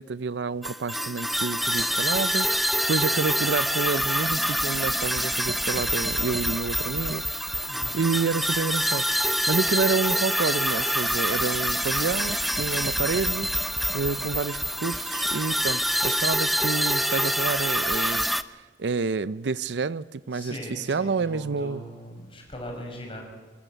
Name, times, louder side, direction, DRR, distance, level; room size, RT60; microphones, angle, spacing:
voice 1, 0.0-7.7 7.9-13.5 13.9-21.8, right 4 dB, 80° right, 0.5 m, -29 dB
sound 1, 0.6-18.4, equal, ahead, 0.6 m, -26 dB
voice 2, 7.7-8.1 13.9-14.3 20.3-23.2, equal, 30° left, 6.0 m, -40 dB
26.0 x 13.5 x 9.1 m
head